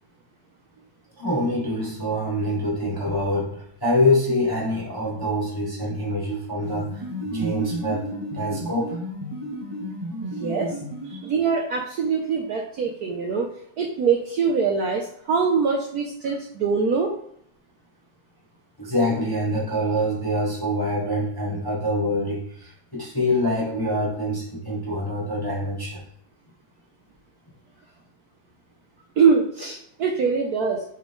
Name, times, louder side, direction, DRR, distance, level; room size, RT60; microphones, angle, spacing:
voice 1, 1.2-7.0 7.3-8.1 8.3-9.0 18.8-26.0, left 1 dB, 15° left, -4 dB, 1.1 m, -25 dB
sound 1, 6.6-11.5, right 1 dB, 25° right, 1.2 m, -32 dB
voice 2, 10.2-10.8 11.0-13.5 13.8-17.1 29.2-30.8, right 5 dB, 70° right, 1 dB, 0.9 m, -23 dB
7.0 x 3.8 x 3.6 m, 0.67 s
omnidirectional pair, 2.4 m